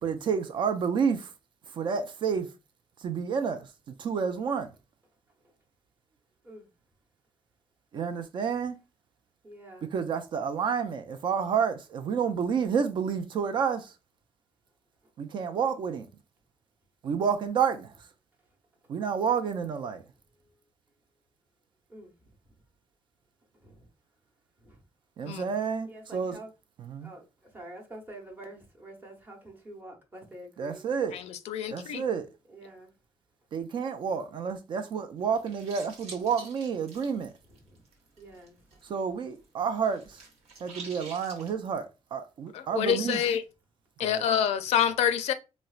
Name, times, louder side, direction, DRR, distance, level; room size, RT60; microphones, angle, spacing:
voice 1, 0.0-1.3 1.7-2.5 3.0-3.7 4.0-4.7 7.9-8.8 9.9-13.9 15.2-16.1 17.0-18.1 18.9-20.0 25.2-26.4 26.8-27.1 30.6-31.2 31.7-32.3 33.5-37.3 38.8-40.2 40.6-43.2 44.0-44.2, right 6 dB, 50° right, 0.4 m, -30 dB
voice 2, 9.4-9.9 21.9-22.1 23.6-23.9 24.6-24.8 25.9-26.5 27.0-30.8 32.5-32.9 37.7-37.8 38.2-38.6, right 1 dB, 20° right, 0.8 m, -47 dB
voice 3, 31.1-32.0 42.5-43.4 44.0-45.3, left 9 dB, 80° left, 0.4 m, -27 dB
sound 1, 35.2-38.9 39.2-41.5, right 3 dB, 90° right, 1.0 m, -48 dB
4.1 x 2.1 x 2.4 m
cardioid pair, 160°, 11 cm